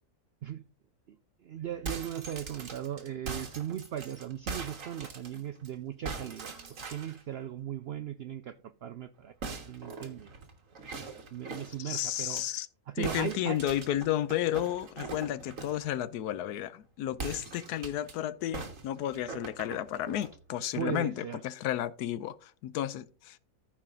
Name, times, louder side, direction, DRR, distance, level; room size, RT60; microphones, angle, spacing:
voice 1, 1.4-8.5 8.8-9.3 9.6-10.3 11.3-12.4 12.9-13.6 20.7-21.4, right 10 dB, 85° right, 0.5 m, -38 dB
sound 1, 1.7-5.7 6.1-7.2 9.4-12.4 13.0-15.9 17.1-18.1 18.5-20.3, right 4 dB, 60° right, 1.9 m, -41 dB
voice 2, 11.8-12.7 13.0-23.4, left 12 dB, 85° left, 1.2 m, -32 dB
14.0 x 5.0 x 3.7 m
omnidirectional pair, 1.6 m